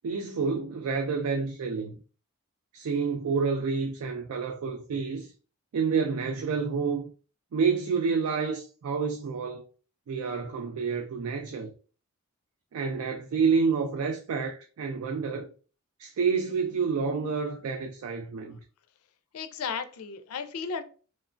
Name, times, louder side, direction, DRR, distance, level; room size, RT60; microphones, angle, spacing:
voice 1, 0.0-1.9 2.7-5.3 5.7-7.1 7.5-9.6 10.1-11.7 12.7-15.5 16.0-18.6, right 5 dB, 80° right, 0.3 m, -29 dB
voice 2, 19.3-20.8, left 6 dB, 80° left, 0.4 m, -34 dB
3.0 x 2.1 x 2.4 m
head